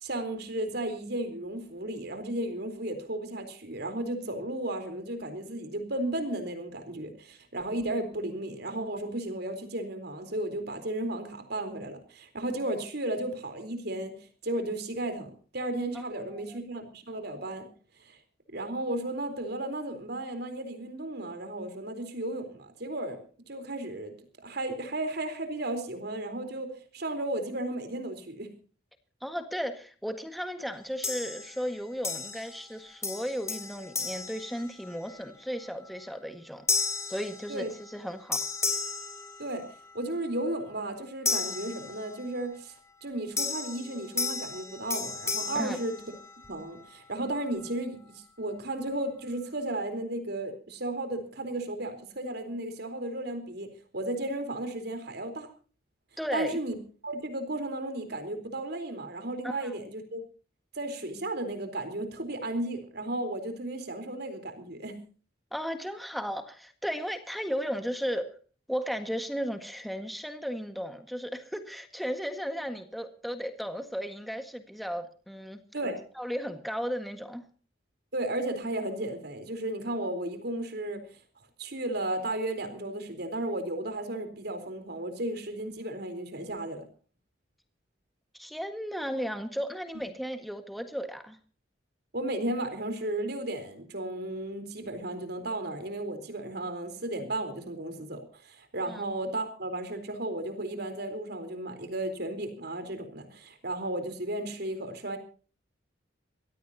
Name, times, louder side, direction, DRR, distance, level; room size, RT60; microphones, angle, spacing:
voice 1, 0.0-14.1 14.4-17.7 18.0-18.2 18.5-23.2 23.5-24.1 24.4-28.5 37.5-37.7 39.4-39.6 39.9-42.7 43.0-46.0 46.5-55.5 56.3-56.8 57.0-60.2 60.7-65.0 75.7-76.0 78.1-81.0 81.6-86.8 89.9-90.0 92.1-105.2, right 1 dB, 60° right, 8 dB, 4.0 m, -34 dB
voice 2, 29.2-36.7 37.0-38.4 45.5-45.8 56.2-56.6 59.4-59.7 65.5-68.3 68.7-75.6 76.1-77.4 88.3-91.4 98.9-99.0, equal, ahead, 6 dB, 1.7 m, -35 dB
sound 1, 31.0-31.7 32.0-32.7 33.0-35.2 35.7-36.0 36.7-38.0 38.3-39.9 41.2-42.4 43.4-46.6, left 4 dB, 15° left, 3.7 m, -34 dB
24.0 x 17.0 x 2.9 m, 0.40 s
head